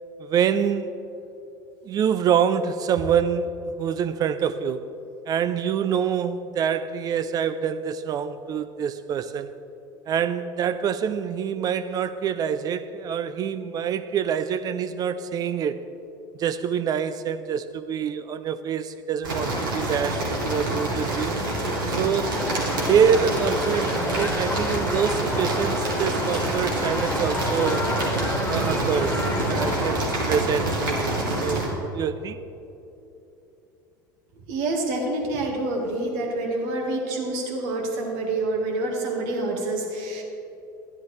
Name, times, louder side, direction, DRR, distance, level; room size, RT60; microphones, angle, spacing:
voice 1, 0.2-1.0 1.9-4.9 5.3-9.5 10.1-15.8 16.4-21.3 22.0-22.4 22.9-27.9 28.5-30.0 30.3-32.4, right 7 dB, 35° right, 12 dB, 0.4 m, -26 dB
sound 1, 19.2-31.7, right 1 dB, 85° right, 1.8 m, -26 dB
sound 2, 22.3-29.9, left 1 dB, 15° left, 1.7 m, -31 dB
voice 2, 34.5-40.2, right 2 dB, 60° right, 2 dB, 1.6 m, -27 dB
11.0 x 11.0 x 3.2 m, 2.9 s
hypercardioid pair, 75°, 11 cm